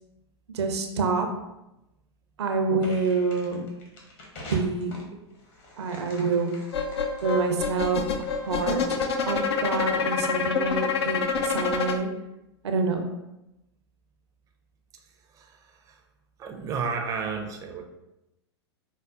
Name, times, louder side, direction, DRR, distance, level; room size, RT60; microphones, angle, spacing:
voice 1, 0.5-1.3 2.4-3.6 4.5-5.0 5.8-6.5 7.2-8.1 8.5-8.8 9.3-12.1 12.6-13.0, right 4 dB, 70° right, 5 dB, 0.5 m, -27 dB
sound 1, 2.8-9.2, left 1 dB, 40° left, 1.0 m, -46 dB
sound 2, 6.7-12.0, left 5 dB, 70° left, 0.4 m, -27 dB
voice 2, 15.3-16.0 16.4-17.8, right 5 dB, 25° right, 3 dB, 0.4 m, -32 dB
4.9 x 2.1 x 2.4 m, 0.92 s
hypercardioid pair, 100°, 15 cm